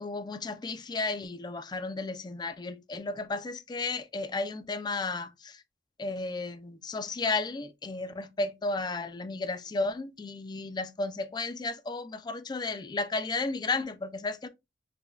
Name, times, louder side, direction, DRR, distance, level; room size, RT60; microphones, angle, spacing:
voice 1, 0.0-5.6 6.0-14.5, left 3 dB, 25° left, 0.4 m, -33 dB
4.9 x 2.2 x 2.3 m
head